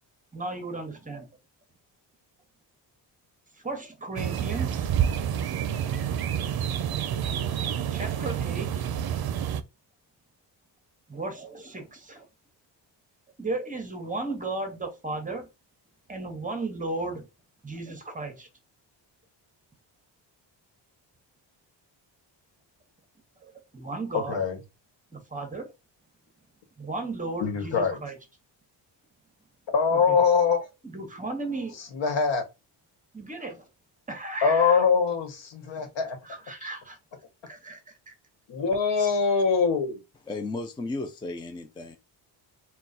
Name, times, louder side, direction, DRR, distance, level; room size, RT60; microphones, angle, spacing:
voice 1, 0.3-1.3 3.6-4.9 7.9-8.7 11.1-12.2 13.4-15.5 16.1-17.3 17.6-18.5 23.4-24.4 25.1-25.7 26.8-28.1 29.9-30.2 30.8-31.8 33.1-33.6 34.1-34.9 36.2-37.0 37.5-38.1, right 2 dB, 20° right, 0.8 m, -35 dB
sound 1, 4.2-9.6, right 9 dB, 55° right, 0.5 m, -28 dB
voice 2, 24.1-24.6 27.4-28.0 29.7-30.6 31.9-32.4 34.4-36.2 36.6-36.7 38.5-40.0, left 5 dB, 75° left, 1.3 m, -23 dB
voice 3, 40.3-42.0, left 2 dB, 10° left, 0.3 m, -34 dB
3.7 x 2.3 x 4.1 m
wide cardioid pair, 140°, 44 cm